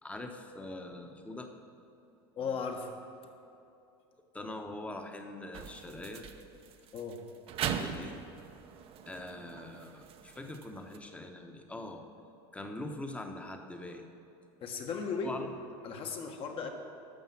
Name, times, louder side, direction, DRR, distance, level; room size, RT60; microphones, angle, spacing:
voice 1, 0.0-1.5 4.3-6.2 7.6-8.2 9.1-12.0 12.5-14.0 15.2-15.5, left 2 dB, 10° left, 4 dB, 1.1 m, -43 dB
voice 2, 2.4-2.9 6.9-7.2 14.6-15.4 15.8-16.7, left 5 dB, 45° left, 3 dB, 1.4 m, -36 dB
sound 1, 5.5-11.0, right 8 dB, 45° right, 0.8 m, -41 dB
12.0 x 6.7 x 5.9 m, 2.7 s
supercardioid pair, 105°, 14 cm